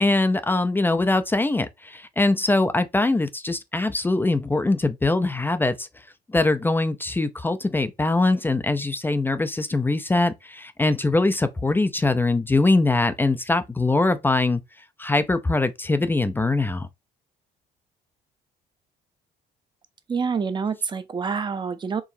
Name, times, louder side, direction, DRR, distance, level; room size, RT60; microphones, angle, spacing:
voice 1, 0.0-5.9 6.3-14.6 15.0-16.9, left 2 dB, 10° left, 0.4 m, -22 dB
voice 2, 20.1-22.0, right 5 dB, 25° right, 0.6 m, -27 dB
4.7 x 3.1 x 2.6 m
cardioid pair, 110°, 17 cm